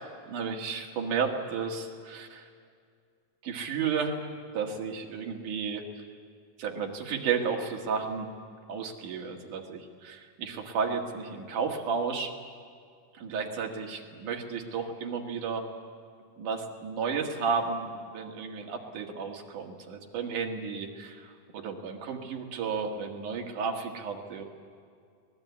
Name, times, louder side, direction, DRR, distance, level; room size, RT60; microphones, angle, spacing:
voice 1, 0.3-2.5 3.4-4.3 4.5-6.0 6.6-8.3 8.7-12.3 13.1-15.7 16.4-24.4, right 5 dB, 65° right, 2 dB, 3.1 m, -33 dB
24.5 x 19.5 x 8.4 m, 2.2 s
omnidirectional pair, 4.0 m